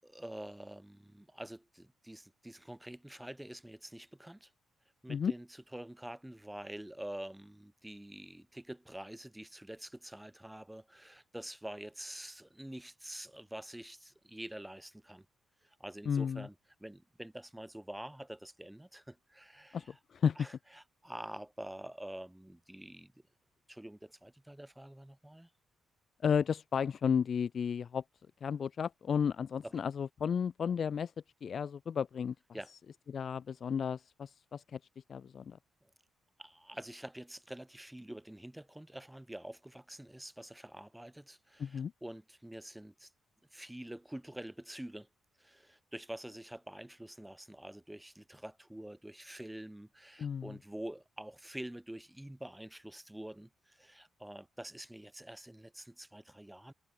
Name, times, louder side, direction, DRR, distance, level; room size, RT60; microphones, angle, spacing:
voice 1, 0.0-4.5 5.0-15.3 15.6-20.0 20.4-23.1 23.7-25.5 29.6-29.7 32.5-32.7 35.8-35.9 36.4-43.1 43.5-45.1 45.4-56.7, right 1 dB, 5° right, 7.3 m, -47 dB
voice 2, 16.1-16.5 19.7-20.4 26.2-28.0 28.4-31.1 31.4-32.3 33.1-34.8 35.1-35.6 41.6-41.9 50.2-50.6, left 7 dB, 50° left, 0.7 m, -33 dB
cardioid pair, 110°, 0 cm